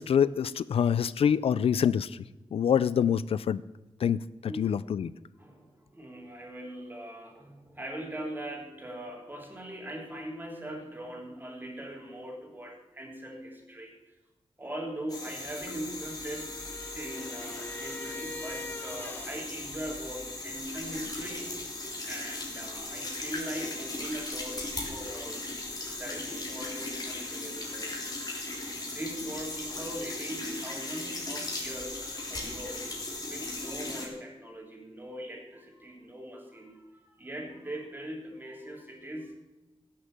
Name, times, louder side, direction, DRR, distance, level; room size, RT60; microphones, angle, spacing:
voice 1, 0.0-2.1 2.5-3.6 4.0-5.1, left 8 dB, 85° left, 18 dB, 0.4 m, -26 dB
voice 2, 4.5-4.8 5.4-13.9 14.6-16.5 16.9-21.5 22.1-25.5 26.0-28.0 28.8-32.0 32.3-32.9 33.2-39.4, right 1 dB, 20° right, 1 dB, 3.2 m, -41 dB
sound 1, 15.1-34.1, left 2 dB, 40° left, 3.3 m, -38 dB
sound 2, 15.9-19.5, left 2 dB, 20° left, 0.6 m, -43 dB
16.0 x 6.7 x 7.4 m, 1.0 s
wide cardioid pair, 110°, 10 cm